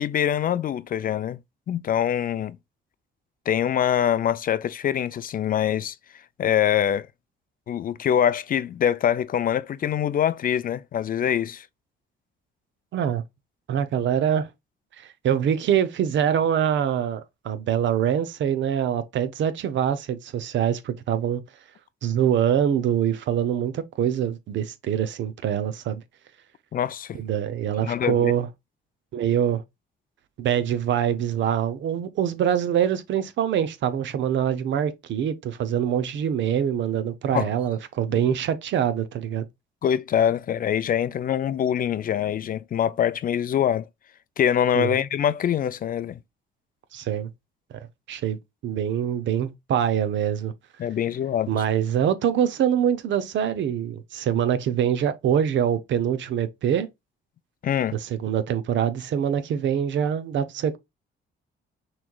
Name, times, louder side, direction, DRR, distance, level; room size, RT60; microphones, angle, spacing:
voice 1, 0.0-1.4 1.7-2.6 3.5-5.9 6.4-7.1 7.7-11.7 26.7-27.2 27.8-28.3 37.3-37.5 39.8-43.8 44.4-46.2 50.8-51.6 57.6-57.9, left 9 dB, 45° left, 0.4 m, -24 dB
voice 2, 12.9-13.2 13.7-14.5 15.0-21.4 22.0-26.0 27.1-28.5 29.1-29.6 30.4-39.5 44.7-45.0 46.9-47.3 48.1-48.4 48.6-50.5 51.5-56.9 57.9-60.8, right 9 dB, 70° right, 0.7 m, -24 dB
6.0 x 3.1 x 2.3 m
cardioid pair, 90°, 20 cm